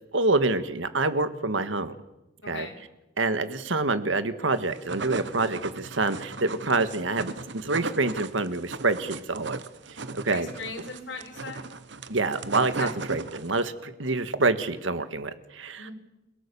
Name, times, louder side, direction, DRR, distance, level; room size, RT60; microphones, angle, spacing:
voice 1, 0.1-1.9 2.5-2.7 3.2-9.6 9.9-10.5 12.1-15.9, right 3 dB, 80° right, 11 dB, 1.7 m, -27 dB
voice 2, 2.4-2.8 10.3-11.7 12.8-12.9 15.8-15.9, left 3 dB, 65° left, 3 dB, 3.9 m, -38 dB
sound 1, 4.6-13.7, right 4 dB, 60° right, 1.1 m, -37 dB
29.5 x 18.0 x 7.0 m, 0.97 s
head